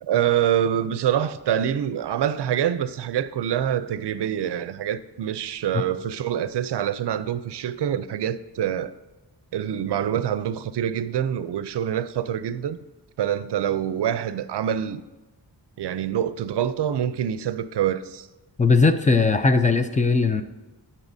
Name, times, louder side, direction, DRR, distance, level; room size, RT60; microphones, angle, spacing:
voice 1, 0.0-8.9 9.5-12.8 13.2-15.0 15.8-18.3, right 10 dB, 75° right, 0.5 m, -25 dB
voice 2, 18.6-20.4, left 4 dB, 20° left, 0.4 m, -19 dB
15.0 x 5.6 x 2.7 m
wide cardioid pair, 175°, 42 cm